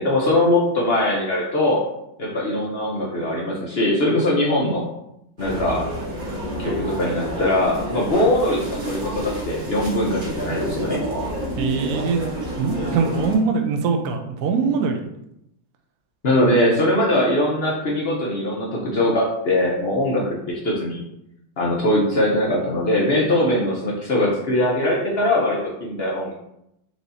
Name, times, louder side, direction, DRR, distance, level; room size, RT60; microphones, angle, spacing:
voice 1, 0.0-1.8 2.2-4.8 5.4-5.9 6.6-11.0 16.2-21.0 21.6-26.3, left 1 dB, 65° left, -3 dB, 0.6 m, -21 dB
sound 1, 5.4-13.4, right 1 dB, 30° right, 1.3 m, -29 dB
voice 2, 11.6-12.2 12.5-15.0, right 5 dB, 70° right, 4 dB, 0.9 m, -22 dB
4.7 x 2.6 x 4.0 m, 0.80 s
omnidirectional pair, 2.1 m